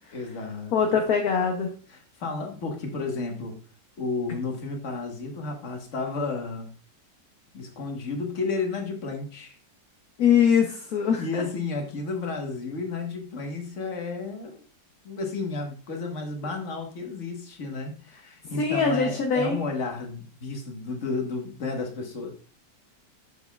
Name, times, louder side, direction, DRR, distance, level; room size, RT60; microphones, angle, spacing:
voice 1, 0.1-0.8 1.9-3.5 4.0-6.7 7.5-9.6 11.2-14.6 15.0-22.3, left 3 dB, 50° left, 3 dB, 1.5 m, -32 dB
voice 2, 0.7-1.7 10.2-11.4 18.6-19.7, left 6 dB, 65° left, 2 dB, 1.2 m, -22 dB
7.0 x 6.5 x 2.3 m, 0.40 s
omnidirectional pair, 1.8 m